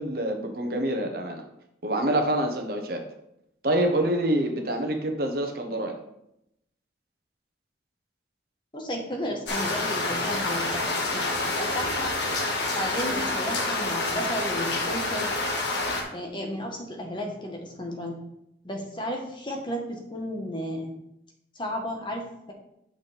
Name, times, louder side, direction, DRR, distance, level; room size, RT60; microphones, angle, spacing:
voice 1, 0.0-1.4 1.8-3.0 3.6-6.0, right 1 dB, 55° right, 4 dB, 1.1 m, -26 dB
voice 2, 8.7-10.9 11.1-12.1 12.7-15.3 16.1-18.2 18.6-20.9 21.5-22.5, equal, 25° left, 1 dB, 1.2 m, -33 dB
sound 1, 9.5-16.0, left 2 dB, 75° left, 1.6 m, -28 dB
8.4 x 6.1 x 3.4 m, 0.81 s
head